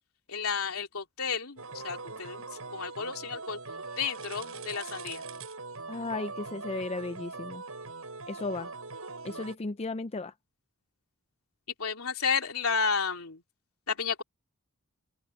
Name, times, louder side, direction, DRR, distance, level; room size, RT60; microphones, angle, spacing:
voice 1, 0.3-2.4 2.7-3.6 4.0-5.2 11.8-13.4 13.9-14.2, left 5 dB, 80° left, 3.1 m, -32 dB
sound 1, 1.6-9.6, right 3 dB, 75° right, 7.9 m, -41 dB
voice 2, 5.9-7.6 8.3-8.7 9.2-10.3, left 3 dB, 30° left, 0.5 m, -35 dB
open air
head